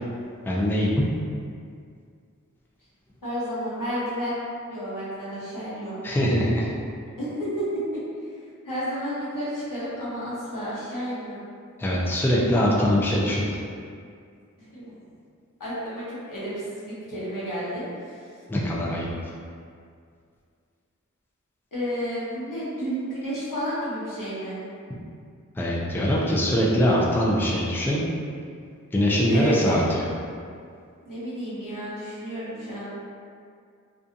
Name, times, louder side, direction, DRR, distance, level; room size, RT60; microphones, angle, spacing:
voice 1, 0.5-1.1 6.0-6.7 11.8-13.6 18.5-19.1 25.6-28.0 28.9-30.1, equal, 5° left, -5 dB, 0.4 m, -22 dB
voice 2, 3.2-4.3 4.7-6.0 7.2-7.8 8.6-11.4 14.7-14.9 15.6-18.3 21.7-24.6 29.3-29.8 31.0-32.9, equal, 90° left, -10 dB, 0.9 m, -31 dB
2.6 x 2.4 x 2.5 m, 2.2 s
wide cardioid pair, 50°, 32 cm